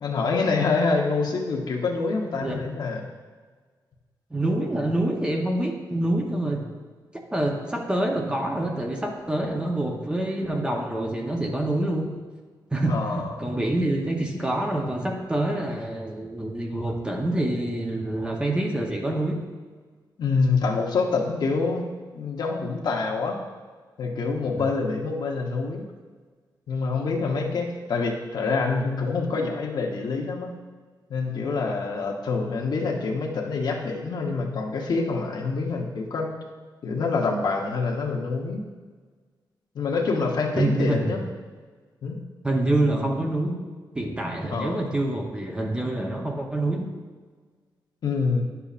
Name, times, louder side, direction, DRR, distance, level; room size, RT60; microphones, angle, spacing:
voice 1, 0.0-3.1 12.9-13.4 20.2-21.8 22.1-23.4 24.0-25.9 26.7-30.5 31.1-36.4 36.8-38.6 39.7-41.2 42.0-42.2 44.5-44.8 48.0-48.4, left 4 dB, 60° left, 0 dB, 0.9 m, -26 dB
voice 2, 4.3-6.7 7.3-12.1 12.7-19.4 24.6-24.7 40.6-41.1 42.4-43.5 43.9-46.9, right 1 dB, 10° right, 1 dB, 0.8 m, -26 dB
10.5 x 6.9 x 2.5 m, 1.5 s
wide cardioid pair, 150°, 8 cm